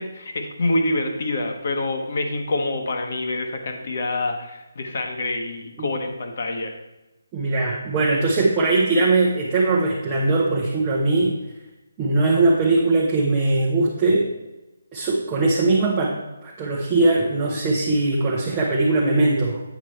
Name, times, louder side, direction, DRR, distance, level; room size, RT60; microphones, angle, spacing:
voice 1, 0.0-6.7, left 2 dB, 50° left, 4 dB, 1.2 m, -26 dB
voice 2, 7.3-11.3 12.0-14.3 14.9-19.6, right 2 dB, 15° right, -4 dB, 0.8 m, -20 dB
8.4 x 5.0 x 4.5 m, 1.0 s
hypercardioid pair, 170°, 0 cm